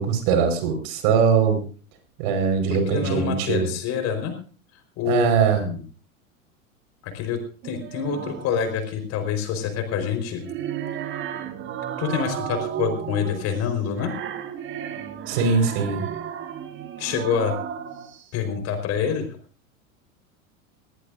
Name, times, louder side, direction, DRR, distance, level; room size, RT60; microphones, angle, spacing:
voice 1, 0.0-1.6 2.2-3.7 5.1-5.7 15.3-16.0, right 6 dB, 45° right, 7 dB, 4.7 m, -21 dB
voice 2, 2.7-4.4 5.0-5.3 5.6-5.8 7.0-10.4 12.0-14.1 17.0-17.5 18.3-19.3, left 7 dB, 35° left, 7 dB, 4.4 m, -26 dB
sound 1, 7.6-8.6 10.1-18.2, right 9 dB, 30° right, 1.8 m, -33 dB
20.0 x 18.0 x 2.6 m, 0.39 s
figure-of-eight pair, 90°, 42 cm